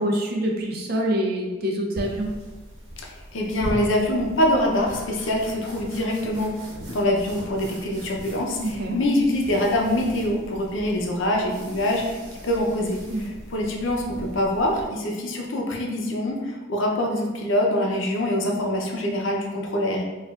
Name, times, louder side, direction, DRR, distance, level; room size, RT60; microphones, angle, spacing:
voice 1, 0.0-2.3 8.6-9.0 13.1-13.2, equal, 50° right, 1 dB, 0.6 m, -25 dB
sound 1, 2.0-14.9, equal, 75° right, 1.1 m, -40 dB
voice 2, 3.0-6.5 6.9-20.0, left 1 dB, 70° left, 0 dB, 0.6 m, -24 dB
4.8 x 2.4 x 2.4 m, 1.3 s
head